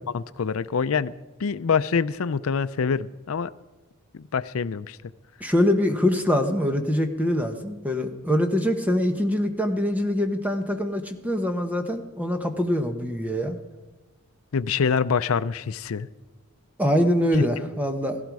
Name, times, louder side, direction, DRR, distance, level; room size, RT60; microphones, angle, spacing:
voice 1, 0.1-1.1 1.4-3.5 4.1-5.0 14.5-16.1 17.4-17.5, left 6 dB, 70° left, 14 dB, 0.5 m, -25 dB
voice 2, 5.4-13.6 16.8-18.2, left 1 dB, 5° right, 6 dB, 1.1 m, -24 dB
16.5 x 16.0 x 4.8 m, 1.2 s
head